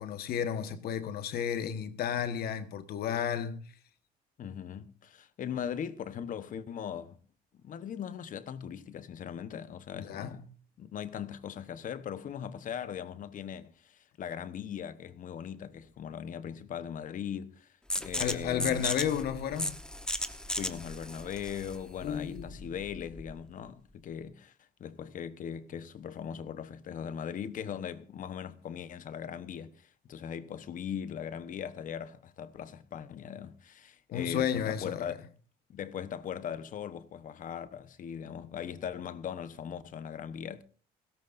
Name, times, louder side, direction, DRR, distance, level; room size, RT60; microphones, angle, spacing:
voice 1, 0.0-3.6 9.9-10.4 18.2-19.8 22.0-22.7 34.1-35.2, left 9 dB, 65° left, 1.4 m, -32 dB
voice 2, 4.4-7.2 7.5-10.4 10.8-18.8 20.5-35.2 35.7-40.6, left 8 dB, 50° left, 1.1 m, -40 dB
sound 1, 17.9-23.4, left 1 dB, 5° left, 1.1 m, -36 dB
17.0 x 17.0 x 2.6 m
cardioid pair, 110°, 17 cm